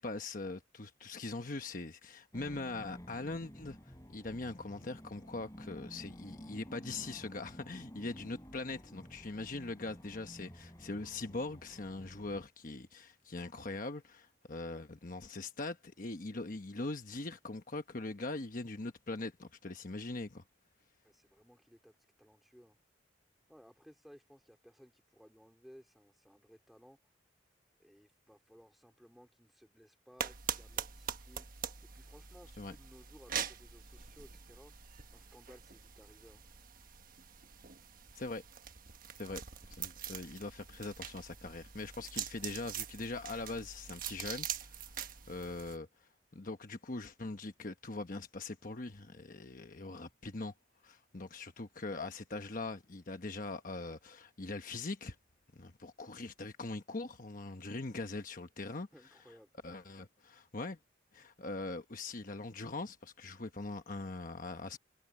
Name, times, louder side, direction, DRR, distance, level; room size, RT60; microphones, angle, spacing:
voice 1, 0.0-20.4 32.6-32.7 38.1-38.4 39.2-39.4 39.7-44.9 45.3-50.5 50.8-55.2 55.5-58.9 59.6-60.8 61.1-64.8, left 2 dB, 45° left, 1.1 m, -42 dB
sound 1, 2.3-12.4, equal, 15° left, 7.8 m, -52 dB
voice 2, 21.0-22.8 23.5-27.0 27.8-31.6 31.9-34.7 35.1-36.4 58.9-59.5, equal, ahead, 3.7 m, -60 dB
sound 2, 30.2-45.8, right 8 dB, 50° right, 1.3 m, -44 dB
head